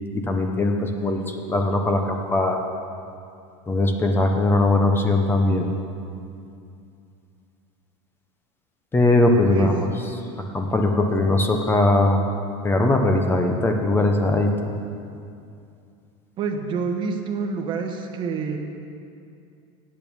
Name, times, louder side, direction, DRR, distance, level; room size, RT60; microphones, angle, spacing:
voice 1, 0.1-2.6 3.7-5.7 8.9-9.7 10.5-12.2 12.6-14.5, left 2 dB, 15° left, 4 dB, 0.8 m, -20 dB
voice 2, 16.4-18.6, right 5 dB, 30° right, 3 dB, 1.1 m, -27 dB
8.9 x 8.5 x 7.0 m, 2.5 s
supercardioid pair, 145°, 16 cm